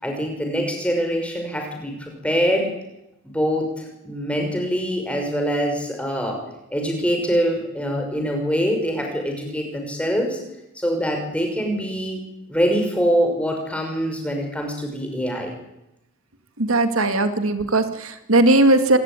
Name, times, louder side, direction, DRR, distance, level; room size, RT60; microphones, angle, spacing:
voice 1, 0.0-2.7 3.2-6.4 6.7-10.4 10.7-12.2 12.5-15.5, equal, 5° left, 3 dB, 5.9 m, -24 dB
voice 2, 16.6-19.0, right 2 dB, 90° right, 8 dB, 2.4 m, -18 dB
26.5 x 17.0 x 10.0 m, 0.88 s
head